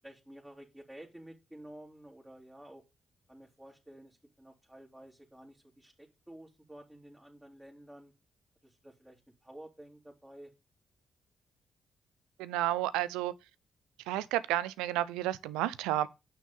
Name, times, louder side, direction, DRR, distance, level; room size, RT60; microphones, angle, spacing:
voice 1, 0.0-2.8 3.3-8.1 8.6-10.5, right 1 dB, 10° right, 3.2 m, -52 dB
voice 2, 12.4-13.3 14.1-16.1, right 14 dB, 80° right, 0.5 m, -31 dB
9.3 x 6.6 x 5.5 m
hypercardioid pair, 40°, 0 cm